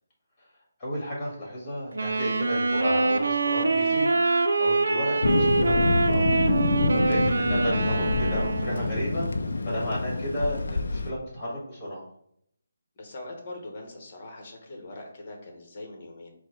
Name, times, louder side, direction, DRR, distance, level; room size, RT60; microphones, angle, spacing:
voice 1, 0.8-4.1 4.6-6.3 6.5-9.3 9.7-12.1, equal, 20° left, -4 dB, 1.7 m, -33 dB
Wind instrument woodwind instrument, 1.9-9.1, right 3 dB, 80° right, 0.5 m, -25 dB
Thunder, 5.2-11.1, left 3 dB, 75° left, 0.4 m, -26 dB
voice 2, 13.0-16.3, left 2 dB, 35° left, 2 dB, 1.1 m, -42 dB
4.4 x 2.2 x 4.5 m, 0.69 s
hypercardioid pair, 165°, 0 cm